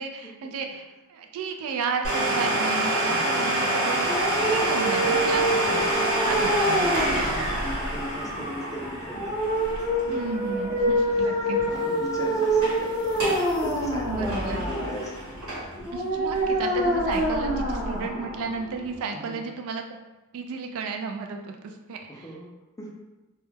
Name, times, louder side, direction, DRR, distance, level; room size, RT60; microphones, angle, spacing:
voice 1, 0.0-4.1 4.5-6.9 10.1-11.6 14.1-14.6 15.9-19.8 20.3-22.3, right 4 dB, 65° right, 5 dB, 0.3 m, -33 dB
Domestic sounds home sounds, 2.0-11.5 11.7-11.8 12.4-12.8 13.1-13.5 13.8-15.9 16.3-16.4 17.1-17.2, right 1 dB, 90° right, 1.2 m, -27 dB
voice 2, 3.1-3.4 5.0-5.3 5.7-6.0 7.3-9.3 9.8-9.9 11.4-15.1 16.5-16.9 19.1-19.5 21.6-21.7 22.1-22.5 22.8-22.9, equal, 15° left, -1 dB, 0.3 m, -38 dB
sound 1, 4.0-19.0, right 1 dB, 15° right, 0.7 m, -27 dB
sound 2, 10.9-14.9, equal, 85° left, 0.6 m, -41 dB
2.3 x 2.1 x 3.1 m, 1.1 s
head